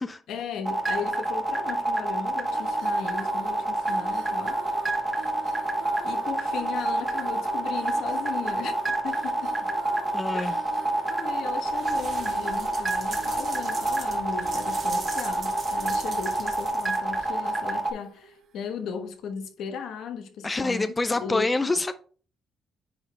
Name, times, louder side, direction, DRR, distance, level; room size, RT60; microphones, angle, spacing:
voice 1, 0.3-4.9 6.0-9.7 10.3-10.6 11.2-20.8 21.2-21.7, left 6 dB, 75° left, 1.2 m, -36 dB
sound 1, 0.6-17.9, right 2 dB, 15° right, 1.1 m, -27 dB
sound 2, 2.4-18.8, right 5 dB, 65° right, 1.1 m, -46 dB
voice 2, 10.1-10.6 20.4-21.9, left 2 dB, 15° left, 0.4 m, -26 dB
sound 3, 11.7-17.2, right 4 dB, 40° right, 2.1 m, -41 dB
9.6 x 4.1 x 3.4 m
cardioid pair, 140°, 0 cm